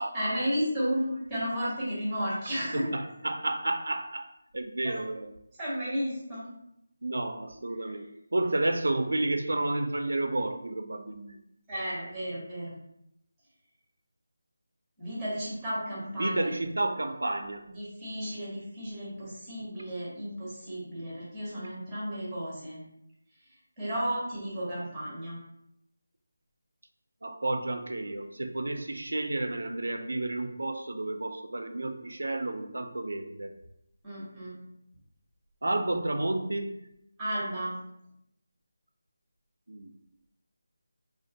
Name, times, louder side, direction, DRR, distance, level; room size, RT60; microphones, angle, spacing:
voice 1, 0.0-2.9 4.8-4.9 5.6-6.5 11.7-12.7 15.0-16.5 17.7-22.8 23.8-25.4 34.0-34.5 37.2-37.7, equal, 5° right, -8 dB, 0.8 m, -33 dB
voice 2, 2.7-4.2 4.5-5.3 7.0-11.4 16.2-17.6 27.2-33.5 35.6-36.7 39.7-39.9, right 2 dB, 80° right, 6 dB, 0.3 m, -31 dB
2.3 x 2.2 x 2.7 m, 0.78 s
figure-of-eight pair, 170°, 0 cm